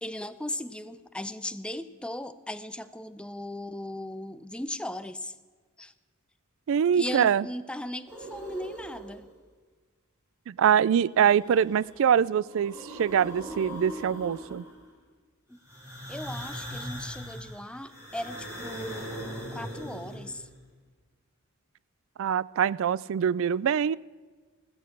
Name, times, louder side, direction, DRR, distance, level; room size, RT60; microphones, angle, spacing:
voice 1, 0.0-5.3 5.8-5.9 6.9-9.3 15.5-15.6 16.1-19.1 19.5-20.5, left 1 dB, 5° left, 11 dB, 0.5 m, -37 dB
voice 2, 6.7-7.4 10.5-14.6 22.2-23.9, right 8 dB, 65° right, 21 dB, 0.3 m, -24 dB
sound 1, 8.1-9.3 11.1-12.0 12.3-14.9 15.7-20.5, equal, 15° right, 4.3 m, -40 dB
15.0 x 13.0 x 6.0 m, 1.4 s
head